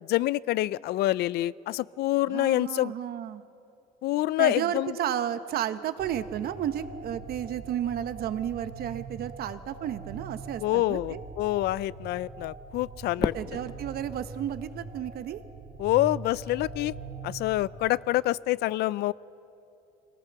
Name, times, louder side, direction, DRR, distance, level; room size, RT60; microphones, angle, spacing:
voice 1, 0.0-2.9 4.0-4.9 10.6-13.3 15.8-16.9 17.2-19.1, left 16 dB, 75° left, 21 dB, 0.4 m, -26 dB
voice 2, 2.3-3.4 4.4-11.2 13.2-15.4, right 10 dB, 65° right, 12 dB, 1.0 m, -32 dB
sound 1, 6.0-17.9, right 3 dB, 45° right, 4.7 m, -43 dB
Fireworks, 13.2-15.5, left 5 dB, 25° left, 0.6 m, -35 dB
22.5 x 18.5 x 6.9 m, 2.9 s
cardioid pair, 110°, 17 cm